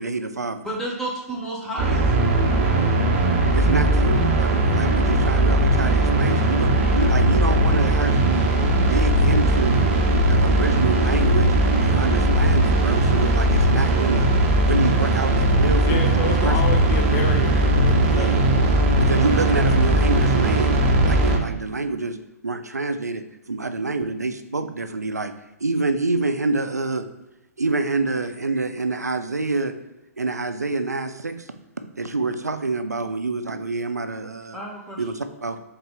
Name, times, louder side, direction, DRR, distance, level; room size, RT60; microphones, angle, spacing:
voice 1, 0.0-0.7 3.5-8.5 8.8-9.9 10.2-14.3 14.6-16.6 18.1-18.3 19.0-20.8 21.1-22.2 22.4-25.3 25.6-27.1 27.6-29.7 30.2-31.5 32.0-34.6 35.0-35.6, right 3 dB, 85° right, 9 dB, 0.4 m, -27 dB
voice 2, 0.6-2.2 34.5-35.0, right 1 dB, 5° left, -5 dB, 1.3 m, -31 dB
sound 1, 1.8-21.4, right 1 dB, 40° right, 0.7 m, -19 dB
voice 3, 15.8-19.8, left 4 dB, 30° left, 3 dB, 0.5 m, -31 dB
4.1 x 3.6 x 3.4 m, 0.99 s
figure-of-eight pair, 115°, 9 cm